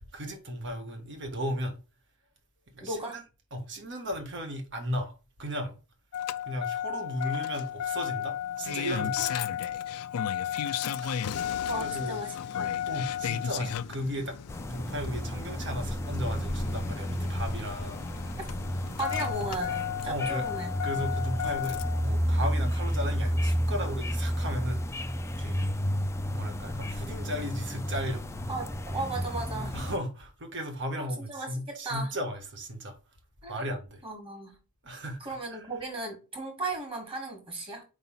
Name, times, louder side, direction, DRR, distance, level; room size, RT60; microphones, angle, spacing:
voice 1, 0.1-1.8 2.7-3.2 3.5-5.1 5.4-5.8 6.4-9.3 11.0-12.2 12.9-14.4 14.7-18.1 20.1-20.4 20.8-24.8 25.4-25.6 26.3-28.2 29.7-33.0 33.5-34.0 34.8-35.2 35.5-35.6, equal, 55° right, 1.6 m, -35 dB
voice 2, 2.8-3.2 9.2-9.3 11.6-12.8 19.0-20.7 28.5-29.8 31.0-32.1 33.4-33.6 34.0-34.6 35.2-37.8, right 2 dB, 25° right, 2.4 m, -36 dB
Engine starting, 6.1-22.1 23.3-23.4, left 9 dB, 85° left, 0.4 m, -34 dB
sound 1, 14.5-30.0, equal, 10° left, 0.4 m, -31 dB
5.0 x 4.0 x 5.6 m
head